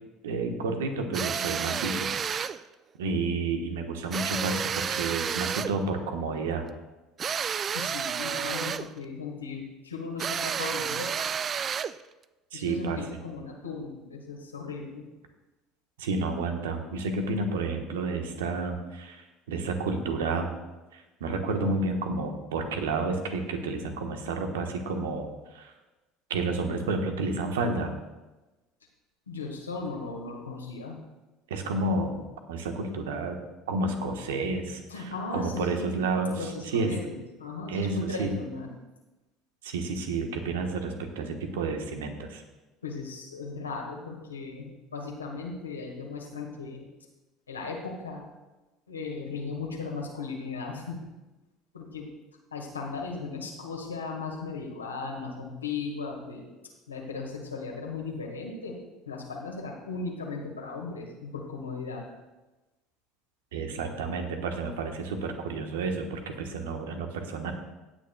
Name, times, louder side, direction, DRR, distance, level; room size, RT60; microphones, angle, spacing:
voice 1, 0.2-2.6 3.0-6.6 12.5-13.0 16.0-20.5 20.9-25.7 26.3-27.9 31.5-33.4 33.7-36.9 37.7-38.4 39.6-42.4 63.5-67.5, right 3 dB, 75° right, 5 dB, 1.2 m, -30 dB
sound 1, 1.1-2.6 4.1-5.8 7.2-8.9 10.2-12.0, right 7 dB, 40° right, 0.3 m, -31 dB
voice 2, 7.7-11.3 12.5-15.1 29.3-31.0 34.9-36.0 36.3-38.7 42.8-46.9 47.5-48.2 48.9-51.0 51.7-52.1 52.5-56.5 56.9-58.8 59.1-62.0, left 4 dB, 90° left, 0 dB, 1.7 m, -37 dB
16.5 x 9.1 x 2.3 m, 1.1 s
hypercardioid pair, 65°, 0 cm